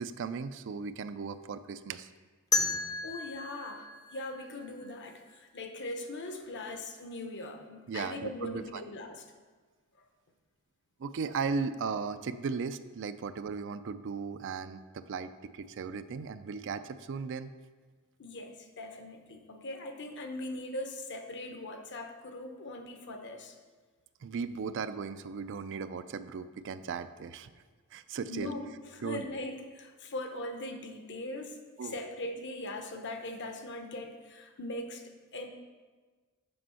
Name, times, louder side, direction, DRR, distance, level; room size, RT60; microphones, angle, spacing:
voice 1, 0.0-2.1 7.9-8.8 11.0-17.5 24.2-27.5 27.9-28.5 29.0-29.2 31.8-32.0, right 5 dB, 60° right, 12 dB, 0.4 m, -36 dB
voice 2, 2.5-9.2 18.2-23.6 28.3-35.0 35.3-35.5, left 1 dB, 55° left, 5 dB, 0.9 m, -40 dB
sound 1, 2.5-5.4, left 3 dB, 15° left, 0.6 m, -34 dB
7.7 x 5.4 x 5.6 m, 1.4 s
head